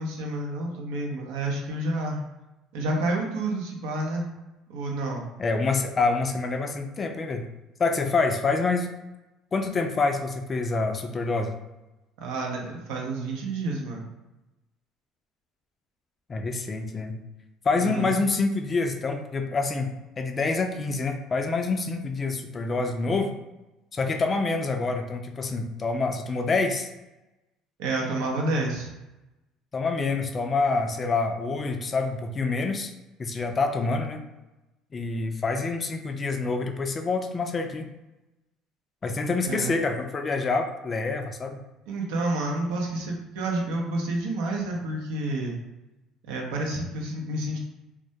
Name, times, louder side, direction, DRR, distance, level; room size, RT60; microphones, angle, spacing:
voice 1, 0.0-2.2 2.7-4.3 4.7-5.2 12.2-14.1 17.8-18.1 27.8-28.9 39.4-39.8 41.9-45.6 46.3-47.6, right 2 dB, 85° right, 0 dB, 0.6 m, -29 dB
voice 2, 5.4-7.4 7.8-8.9 9.5-11.5 16.3-17.2 17.6-23.3 23.9-26.9 29.7-32.9 33.2-34.3 34.9-37.9 39.0-41.6, left 3 dB, 30° left, 5 dB, 0.3 m, -27 dB
2.2 x 2.1 x 2.7 m, 1.0 s
supercardioid pair, 100°, 0 cm